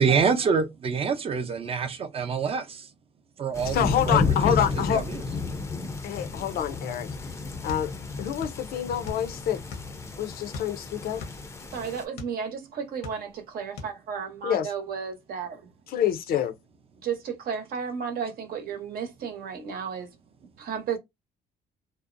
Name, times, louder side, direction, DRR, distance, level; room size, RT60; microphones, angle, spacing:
voice 1, 0.0-2.9 3.4-5.2, right 5 dB, 35° right, 0.6 m, -26 dB
sound 1, 3.5-12.0, left 4 dB, 15° left, 0.5 m, -32 dB
voice 2, 3.7-5.0 6.0-7.1 7.6-7.9 8.2-9.6 10.2-11.2 14.4-14.7 15.9-16.5, left 10 dB, 60° left, 0.5 m, -27 dB
sound 2, 7.7-8.6 8.9-10.0 10.5-12.4 12.8-13.5 13.8-14.0, left 4 dB, 85° left, 0.9 m, -39 dB
voice 3, 11.7-15.7 17.0-20.1 20.6-21.0, right 6 dB, 60° right, 0.8 m, -33 dB
2.6 x 2.0 x 2.5 m
cardioid pair, 110°, 17 cm